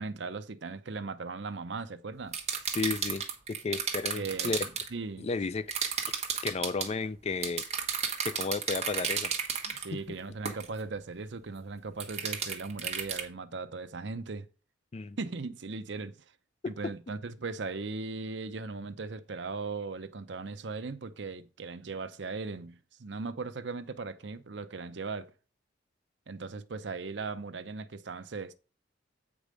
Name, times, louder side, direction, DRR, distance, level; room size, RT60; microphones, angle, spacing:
voice 1, 0.0-2.4 4.1-4.6 4.9-5.3 9.7-14.5 15.2-16.1 16.7-25.3 26.3-28.5, right 4 dB, 65° right, 0.7 m, -38 dB
sound 1, 2.3-4.9 5.7-6.9 7.4-9.9 10.5-10.7 12.0-13.2, right 7 dB, 35° right, 1.3 m, -33 dB
voice 2, 2.7-3.2 3.5-4.7 5.2-5.7 6.4-7.6 8.2-9.3 9.9-10.2 14.9-15.2 16.6-16.7, left 4 dB, 35° left, 0.3 m, -33 dB
8.3 x 4.9 x 5.0 m
head